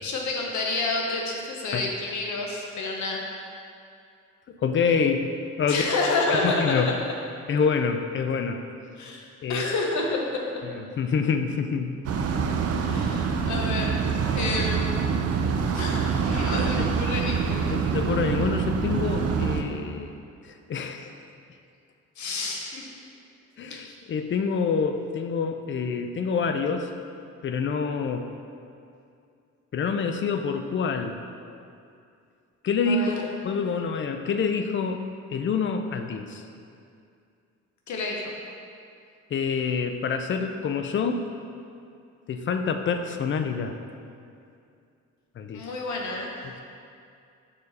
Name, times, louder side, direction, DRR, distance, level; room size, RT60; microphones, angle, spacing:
voice 1, 0.0-3.2 5.7-6.8 9.0-9.2 9.5-10.3 12.9-14.0 14.3-14.9 15.7-17.8 22.2-22.9 32.9-33.1 37.9-38.3 45.5-46.3, left 3 dB, 70° left, 0 dB, 0.8 m, -29 dB
voice 2, 4.5-5.3 5.6-5.9 6.4-6.9 7.5-8.7 9.4-9.6 11.0-11.9 12.2-12.5 13.1-13.2 15.4-15.9 16.3-16.9 17.7-20.2 20.7-21.1 23.6-26.9 27.4-28.3 29.7-31.2 32.6-35.0 35.3-36.4 39.3-41.3 42.3-43.8 45.4-45.6, left 5 dB, 40° left, 6 dB, 0.5 m, -27 dB
sound 1, 12.0-19.6, right 6 dB, 55° right, 0.5 m, -25 dB
5.0 x 4.6 x 4.1 m, 2.5 s
cardioid pair, 90°, 30 cm